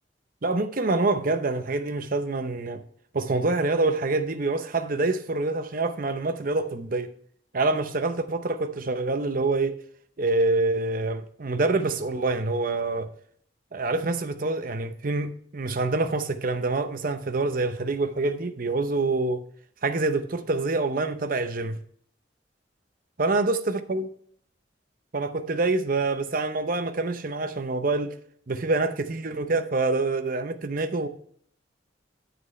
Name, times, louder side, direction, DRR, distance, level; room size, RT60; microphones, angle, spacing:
voice 1, 0.4-2.8 3.1-7.1 7.5-9.8 10.2-13.1 13.7-19.4 19.8-21.8 23.2-24.1 25.1-28.1 28.5-31.1, right 3 dB, 50° right, 0.8 m, -26 dB
9.6 x 8.0 x 3.2 m
head